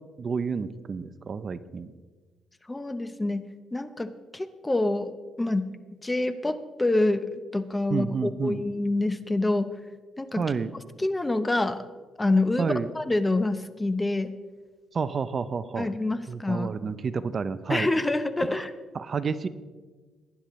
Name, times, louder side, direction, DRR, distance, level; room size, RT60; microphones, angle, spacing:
voice 1, 0.2-1.9 7.9-8.6 10.4-10.7 12.6-12.9 14.9-15.9 16.3-17.9 18.9-19.5, right 5 dB, 45° right, 14 dB, 0.5 m, -30 dB
voice 2, 2.7-5.7 6.0-9.7 10.2-10.4 11.0-11.8 12.2-14.3 15.8-16.7 17.7-18.7, left 2 dB, 15° left, 12 dB, 0.7 m, -27 dB
18.0 x 10.0 x 3.1 m, 1.4 s
cardioid pair, 90°, 0 cm